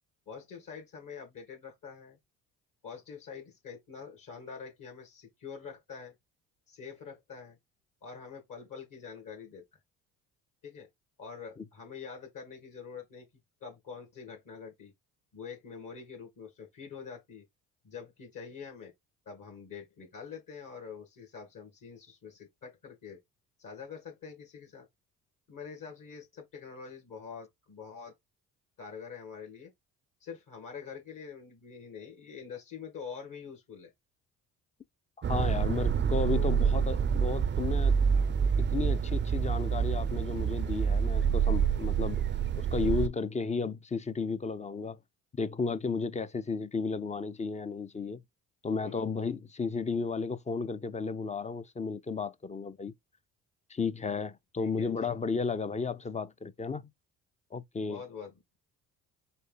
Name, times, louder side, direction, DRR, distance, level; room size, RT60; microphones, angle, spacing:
voice 1, 0.3-2.2 2.8-6.1 6.7-7.6 8.0-9.6 10.6-10.9 11.2-13.3 13.6-14.9 15.3-17.4 17.8-18.9 19.3-23.2 23.6-24.9 25.5-28.1 28.8-29.7 30.2-33.9 35.3-35.5 36.3-36.6 48.6-49.1 54.6-55.1 57.8-58.6, left 6 dB, 50° left, 2.1 m, -45 dB
sound 1, 35.2-43.1, right 7 dB, 30° right, 0.5 m, -27 dB
voice 2, 35.3-38.0 38.6-42.2 42.6-45.0 45.3-48.2 48.6-52.9 53.7-56.9 57.5-58.0, left 4 dB, 15° left, 0.5 m, -33 dB
4.2 x 3.2 x 3.9 m
hypercardioid pair, 55°, 41 cm